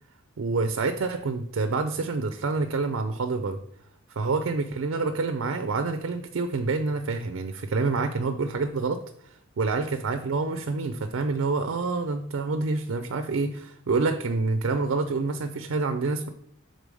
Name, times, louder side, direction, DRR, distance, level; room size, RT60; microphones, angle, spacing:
voice 1, 0.4-3.6 4.2-9.0 9.6-16.3, right 3 dB, 65° right, 7 dB, 0.4 m, -27 dB
5.3 x 3.9 x 4.7 m, 0.69 s
head